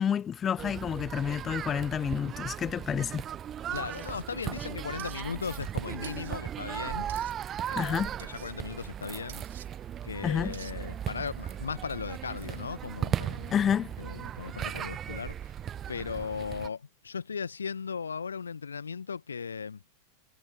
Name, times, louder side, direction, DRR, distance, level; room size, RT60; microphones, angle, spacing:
voice 1, 0.0-3.2 7.8-8.2 10.2-10.5 13.5-13.9, left 8 dB, 25° left, 0.4 m, -29 dB
sound 1, 0.6-16.7, right 10 dB, 25° right, 0.5 m, -37 dB
voice 2, 3.7-7.1 7.7-9.4 10.0-13.5 14.0-15.5 15.9-19.8, left 6 dB, 75° left, 1.3 m, -37 dB
sound 2, 3.8-4.2 5.0-5.2 6.0-6.4 7.1-7.3 8.2-8.5 9.3-9.7 10.5-10.8, right 11 dB, 60° right, 2.3 m, -49 dB
figure-of-eight pair, 90°, 0 cm